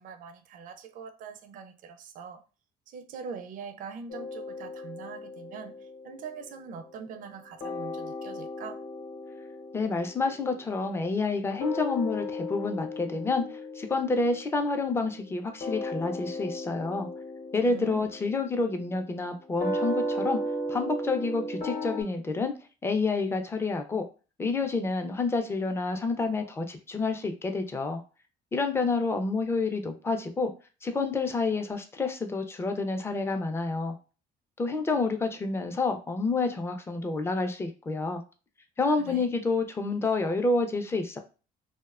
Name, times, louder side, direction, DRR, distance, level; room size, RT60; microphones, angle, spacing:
voice 1, 0.0-2.4 2.9-5.8 6.0-8.8 17.6-18.1 38.8-39.4, right 6 dB, 50° right, 0.4 m, -43 dB
sound 1, 4.1-7.3 7.6-22.0, left 1 dB, 55° left, 0.7 m, -36 dB
voice 2, 9.7-17.1 17.5-20.4 20.7-22.5 22.8-24.0 24.4-28.0 28.5-30.5 30.8-34.0 34.6-38.2 38.8-41.2, left 3 dB, 15° left, 0.4 m, -29 dB
2.6 x 2.1 x 2.3 m
cardioid pair, 110°, 17 cm